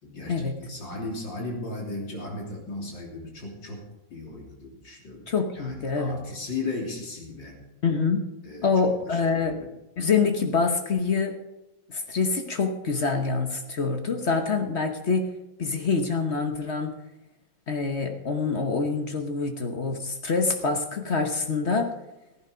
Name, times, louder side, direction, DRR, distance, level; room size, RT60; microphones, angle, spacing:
voice 1, 0.0-3.8 4.1-5.2 5.5-7.6 8.4-8.7 9.0-9.7, left 3 dB, 70° left, -1 dB, 3.9 m, -36 dB
voice 2, 5.3-6.2 7.8-8.2 8.6-9.6 10.0-11.4 11.9-15.3 15.6-16.9 17.7-21.9, left 4 dB, 40° left, 5 dB, 1.1 m, -25 dB
15.5 x 10.5 x 5.1 m, 0.97 s
omnidirectional pair, 2.1 m